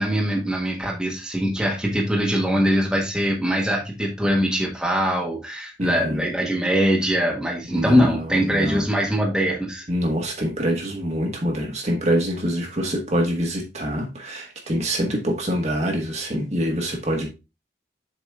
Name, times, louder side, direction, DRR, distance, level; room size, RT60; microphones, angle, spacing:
voice 1, 0.0-9.8, equal, 5° right, 1.4 m, -22 dB
voice 2, 5.8-6.3 7.7-8.8 9.9-17.3, equal, 35° right, 1.4 m, -25 dB
7.1 x 4.1 x 3.6 m
head